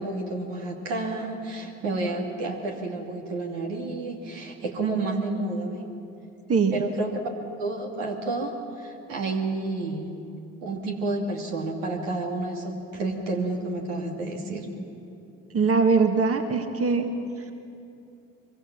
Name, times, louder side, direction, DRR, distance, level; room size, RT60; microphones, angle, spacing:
voice 1, 0.0-5.8 6.7-7.1 7.6-10.2 10.6-14.7, right 2 dB, 80° right, 0 dB, 2.6 m, -30 dB
voice 2, 15.5-17.1, right 4 dB, 40° right, 5 dB, 1.9 m, -21 dB
24.5 x 23.5 x 6.0 m, 2.7 s
hypercardioid pair, 50°, 37 cm